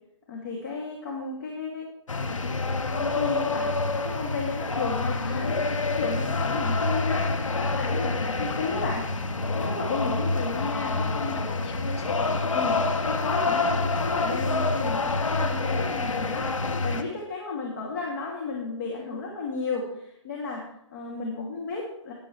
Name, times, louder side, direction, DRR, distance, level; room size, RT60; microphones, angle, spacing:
voice 1, 0.3-1.9 2.9-3.7 4.0-5.6 5.9-7.3 7.5-9.1 9.5-11.4 12.5-12.8 13.1-22.1, left 4 dB, 35° left, -2 dB, 2.6 m, -33 dB
sound 1, 2.1-17.0, left 3 dB, 85° left, 1.4 m, -27 dB
voice 2, 5.1-5.6 10.6-12.8, left 3 dB, 55° left, 1 dB, 2.8 m, -40 dB
16.5 x 11.0 x 3.3 m, 0.74 s
hypercardioid pair, 155°, 16 cm